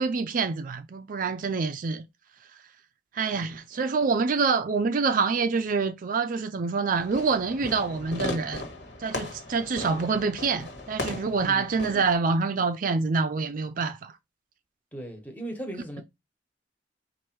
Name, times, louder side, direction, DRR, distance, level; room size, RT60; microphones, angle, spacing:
voice 1, 0.0-2.0 3.1-8.7 9.0-14.2, right 4 dB, 50° right, 0.4 m, -26 dB
Fireworks, 7.0-12.1, left 2 dB, 70° left, 1.5 m, -37 dB
voice 2, 14.9-16.0, right 1 dB, 10° left, 1.3 m, -37 dB
4.6 x 2.6 x 4.5 m
head